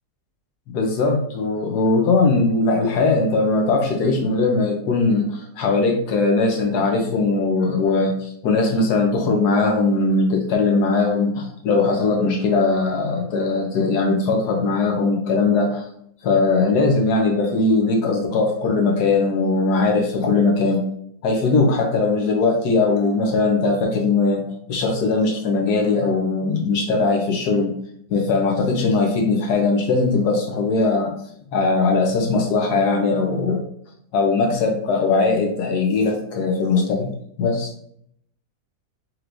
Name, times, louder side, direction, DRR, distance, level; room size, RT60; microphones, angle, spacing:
voice 1, 0.7-15.8 16.2-20.8 21.2-27.7 28.1-31.1 31.5-33.6 34.1-37.1 37.4-37.7, left 3 dB, 75° left, 2 dB, 1.3 m, -20 dB
4.6 x 3.0 x 2.5 m, 0.69 s
omnidirectional pair, 1.7 m